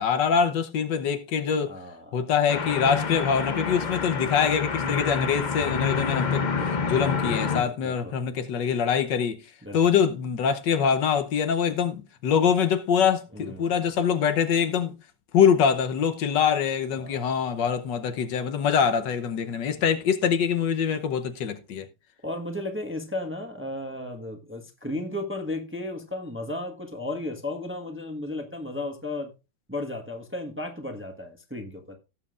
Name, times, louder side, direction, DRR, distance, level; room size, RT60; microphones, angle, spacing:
voice 1, 0.0-1.7 2.1-6.4 6.9-9.4 9.7-14.9 15.3-21.9, left 7 dB, 70° left, 1.5 m, -24 dB
voice 2, 1.7-2.3 7.6-8.2 9.6-9.9 13.3-14.0 17.0-17.4 19.9-20.0 22.2-29.3 29.7-32.0, left 2 dB, 10° right, 1.1 m, -34 dB
sound 1, 2.5-7.6, left 5 dB, 50° left, 0.5 m, -28 dB
17.5 x 7.5 x 2.5 m
omnidirectional pair, 2.0 m